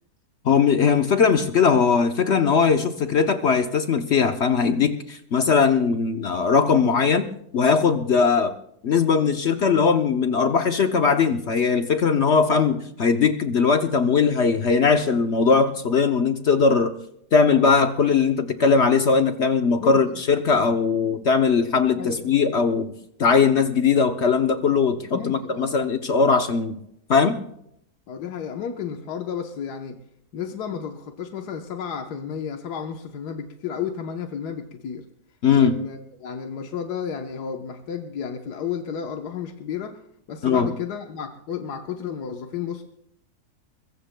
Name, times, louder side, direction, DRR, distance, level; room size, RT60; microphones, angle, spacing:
voice 1, 0.4-8.5 8.8-17.0 17.3-22.9 23.2-26.8 27.1-27.4 35.4-35.8 40.4-40.7, left 5 dB, 55° left, 7 dB, 0.8 m, -20 dB
voice 2, 19.8-20.2 21.9-22.3 25.1-25.8 28.1-30.0 30.3-35.0 35.5-40.0 40.3-42.8, left 7 dB, 75° left, 3 dB, 1.5 m, -32 dB
22.5 x 22.0 x 2.2 m, 0.75 s
omnidirectional pair, 1.7 m